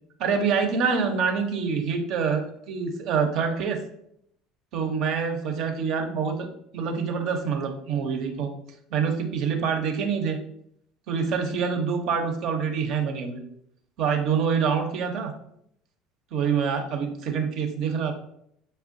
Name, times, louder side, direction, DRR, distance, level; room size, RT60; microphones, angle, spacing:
voice 1, 0.2-3.8 4.7-6.5 6.7-8.5 8.9-10.4 11.1-13.4 14.0-15.3 16.3-18.1, right 6 dB, 60° right, 5 dB, 0.5 m, -26 dB
5.1 x 2.1 x 2.5 m, 0.72 s
hypercardioid pair, 70°, 0 cm